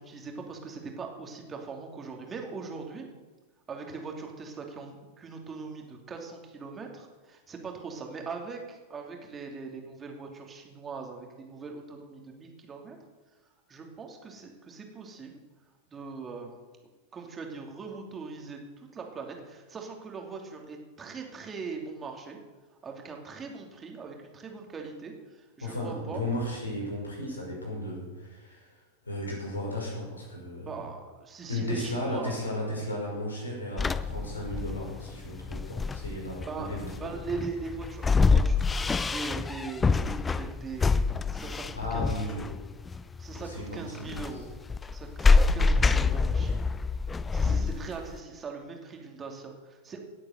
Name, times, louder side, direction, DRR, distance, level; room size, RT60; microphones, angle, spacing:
voice 1, 0.0-3.1 3.7-13.0 13.7-15.4 15.9-16.6 17.1-22.4 22.8-26.2 30.7-32.4 36.4-41.0 41.3-42.4 43.2-44.5 44.9-46.6 47.3-50.0, right 4 dB, 20° right, 2 dB, 2.8 m, -41 dB
voice 2, 25.6-30.9 31.4-37.1 41.7-42.7 43.4-44.4 47.4-47.7, left 1 dB, 75° left, -2 dB, 5.7 m, -35 dB
sound 1, 33.8-48.2, left 4 dB, 15° left, 0.5 m, -26 dB
17.5 x 8.4 x 6.6 m, 1.3 s
figure-of-eight pair, 90°, 0 cm